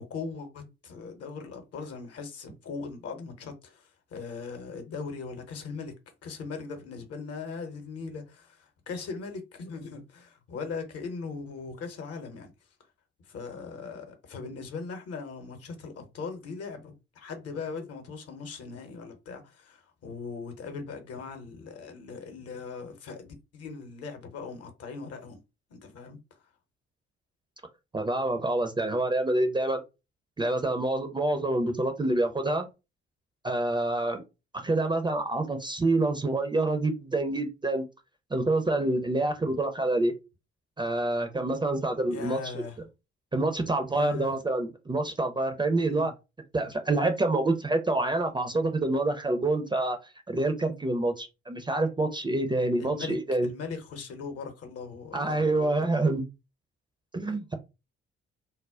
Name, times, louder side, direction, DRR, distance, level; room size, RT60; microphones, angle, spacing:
voice 1, 0.0-5.9 6.2-12.5 13.3-25.4 25.7-26.2 42.1-42.8 43.9-44.4 45.9-46.1 46.6-46.7 52.8-53.2 53.4-56.1, left 4 dB, 50° left, 0.8 m, -39 dB
voice 2, 27.9-29.8 30.4-32.7 33.4-34.2 34.5-37.8 38.3-40.2 40.8-42.6 43.3-46.1 46.5-50.0 50.3-53.5 55.1-56.2 57.1-57.5, right 2 dB, 15° right, 0.5 m, -27 dB
2.2 x 2.1 x 3.5 m
figure-of-eight pair, 45°, 30 cm